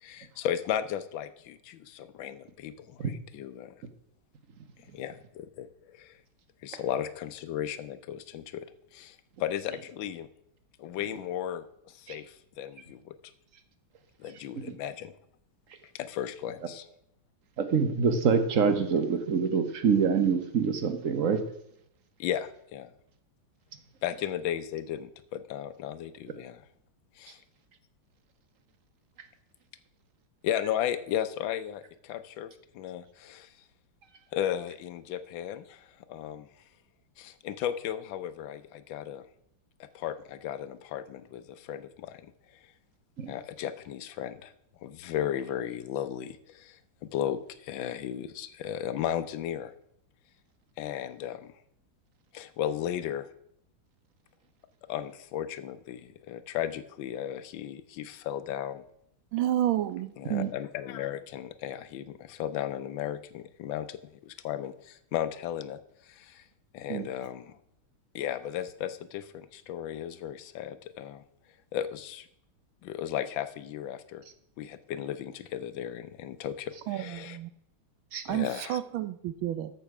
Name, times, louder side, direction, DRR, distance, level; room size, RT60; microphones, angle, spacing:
voice 1, 0.0-3.8 4.9-6.2 6.6-8.7 8.9-10.3 10.8-13.1 14.2-15.1 15.9-16.9 22.2-22.9 24.0-26.6 27.2-27.4 30.4-32.5 32.7-33.5 34.3-36.5 37.2-39.2 39.9-42.3 43.3-44.5 44.8-49.7 50.8-51.5 52.3-53.3 54.9-58.8 60.2-66.4 66.7-67.6 68.1-71.2 71.7-72.3 72.8-74.2 74.6-77.4 78.3-78.8, left 10 dB, 75° left, 12 dB, 1.5 m, -35 dB
voice 2, 17.6-21.4 43.2-43.3 60.3-60.5 66.9-67.0 78.1-78.2, right 6 dB, 50° right, 9 dB, 1.2 m, -25 dB
voice 3, 59.3-60.1 76.9-77.5 78.2-79.7, right 12 dB, 80° right, 13 dB, 1.5 m, -30 dB
13.5 x 5.7 x 5.9 m, 0.73 s
omnidirectional pair, 2.2 m